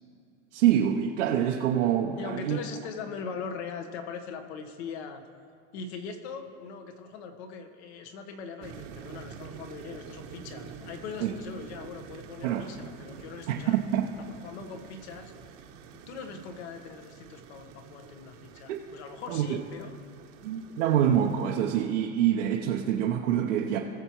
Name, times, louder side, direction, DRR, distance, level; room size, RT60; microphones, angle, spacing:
voice 1, 0.5-2.6 11.2-11.3 12.4-12.7 13.5-14.1 18.7-18.8 19.3-19.6 20.4-23.8, right 10 dB, 75° right, 0 dB, 0.9 m, -26 dB
voice 2, 2.2-5.2 5.7-13.8 14.3-15.3 15.9-20.0, left 5 dB, 60° left, 6 dB, 1.3 m, -41 dB
sound 1, 8.6-21.8, right 7 dB, 45° right, 1.1 m, -47 dB
19.5 x 6.9 x 3.1 m, 2.5 s
supercardioid pair, 135°, 37 cm